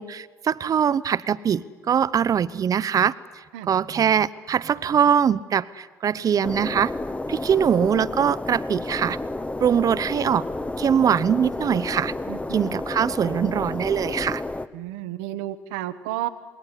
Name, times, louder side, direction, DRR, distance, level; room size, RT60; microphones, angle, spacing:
voice 1, 0.0-3.1 3.7-6.9 7.3-9.2 9.6-10.4 10.8-12.1 12.5-14.4, right 8 dB, 50° right, 16 dB, 0.9 m, -22 dB
sound 1, 6.4-14.7, left 2 dB, 15° left, 1.2 m, -31 dB
voice 2, 12.3-12.7 14.7-16.3, right 14 dB, 75° right, 11 dB, 1.2 m, -32 dB
28.0 x 21.0 x 9.9 m, 1.4 s
hypercardioid pair, 50°, 8 cm